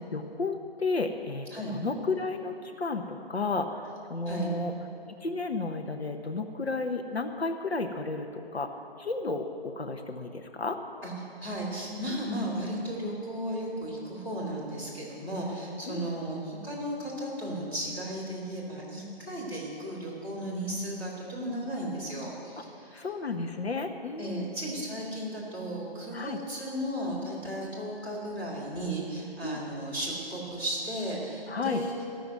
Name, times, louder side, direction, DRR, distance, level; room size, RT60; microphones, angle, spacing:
voice 1, 0.1-4.7 5.2-10.8 15.9-16.1 22.6-24.5 26.1-26.4 29.4-29.6 31.5-31.8, left 3 dB, 75° left, 6 dB, 1.0 m, -33 dB
voice 2, 4.2-4.6 11.0-11.1 11.4-23.1 24.2-31.9, right 1 dB, 5° left, -10 dB, 2.9 m, -35 dB
14.0 x 6.9 x 9.1 m, 2.7 s
figure-of-eight pair, 150°, 32 cm